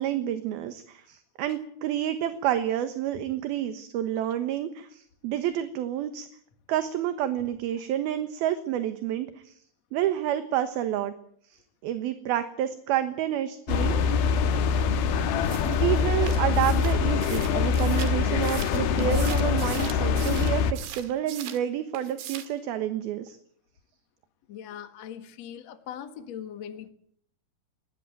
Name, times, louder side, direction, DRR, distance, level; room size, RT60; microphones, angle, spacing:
voice 1, 0.0-6.3 6.7-9.6 9.9-11.1 11.5-14.2 14.9-15.1 15.6-23.4, right 11 dB, 70° right, 9 dB, 3.0 m, -29 dB
sound 1, 13.7-20.7, left 6 dB, 70° left, 3.1 m, -24 dB
sound 2, 15.4-21.7 21.9-22.6, right 10 dB, 85° right, 4.1 m, -41 dB
voice 2, 24.5-26.9, left 9 dB, 55° left, 8 dB, 2.2 m, -40 dB
21.5 x 18.5 x 9.1 m, 0.66 s
omnidirectional pair, 4.8 m